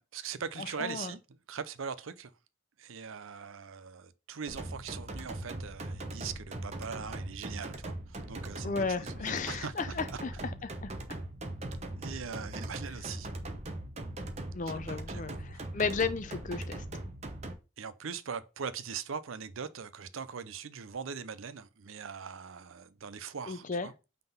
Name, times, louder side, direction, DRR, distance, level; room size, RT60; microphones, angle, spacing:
voice 1, 0.0-2.3 2.8-10.2 11.9-13.3 14.7-15.6 17.8-23.9, right 6 dB, 75° right, 0.6 m, -41 dB
voice 2, 0.8-1.1 8.6-10.3 10.6-10.9 14.5-15.3 15.7-16.8 23.5-23.9, left 4 dB, 35° left, 0.5 m, -33 dB
sound 1, 4.5-17.5, right 1 dB, 30° right, 0.8 m, -40 dB
5.6 x 3.7 x 5.4 m
head